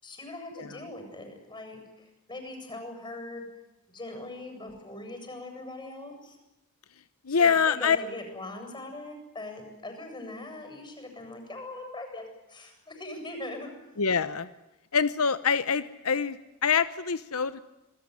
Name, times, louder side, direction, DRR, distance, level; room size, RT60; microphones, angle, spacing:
voice 1, 0.0-3.4 3.9-6.4 7.3-13.7, left 2 dB, 20° left, 5 dB, 7.9 m, -41 dB
voice 2, 7.2-8.0 14.0-14.5 14.9-17.6, left 6 dB, 85° left, 14 dB, 0.9 m, -25 dB
28.0 x 20.5 x 9.8 m, 0.95 s
head